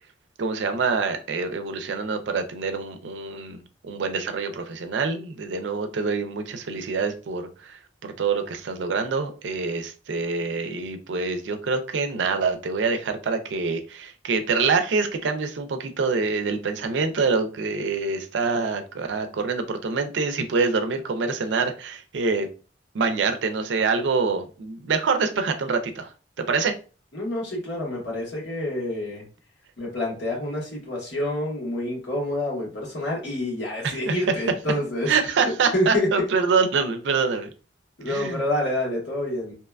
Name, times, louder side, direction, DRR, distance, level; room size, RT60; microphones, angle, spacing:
voice 1, 0.4-22.5 22.9-26.1 26.5-26.7 33.8-34.3 35.1-37.5 38.1-38.4, right 4 dB, 80° right, 7 dB, 0.4 m, -25 dB
voice 2, 27.1-29.2 29.8-35.1 35.7-36.1 38.0-39.5, left 1 dB, 85° left, -3 dB, 1.3 m, -27 dB
2.8 x 2.2 x 2.3 m, 0.37 s
head